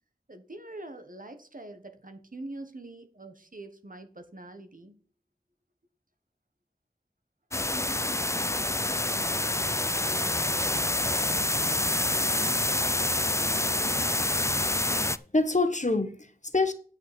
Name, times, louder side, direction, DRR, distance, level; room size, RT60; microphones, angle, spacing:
voice 1, 0.3-5.0, right 2 dB, 60° right, 1.4 m, -44 dB
sound 1, 7.5-15.2, left 2 dB, 15° left, 0.5 m, -27 dB
voice 2, 14.9-16.7, left 3 dB, 50° left, 1.3 m, -27 dB
9.1 x 5.8 x 6.0 m
wide cardioid pair, 45°, 16 cm